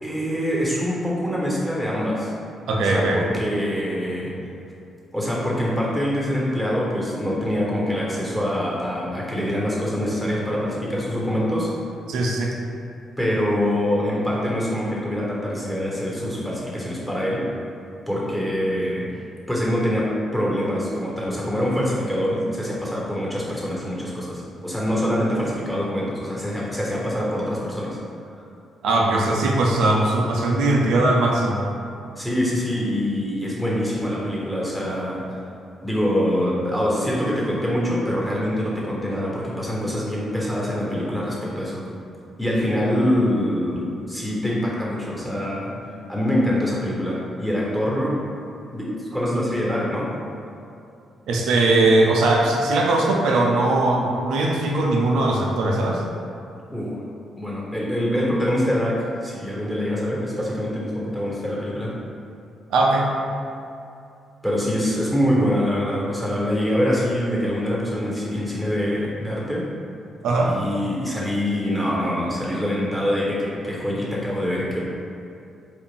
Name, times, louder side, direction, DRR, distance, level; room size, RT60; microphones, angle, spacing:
voice 1, 0.0-2.3 2.8-4.3 5.1-11.7 13.2-17.4 18.1-19.1 19.5-28.0 32.2-35.4 35.8-41.8 42.4-45.7 46.1-48.2 48.7-50.1 56.7-57.0 57.4-61.9 64.4-69.7 70.4-74.8, equal, 5° left, -5 dB, 1.2 m, -24 dB
voice 2, 2.7-3.2 12.1-12.5 28.8-31.6 51.3-56.0 62.7-63.1 70.2-70.5, right 2 dB, 80° right, -1 dB, 0.4 m, -20 dB
3.8 x 2.4 x 3.7 m, 2.6 s
supercardioid pair, 55°, 0 cm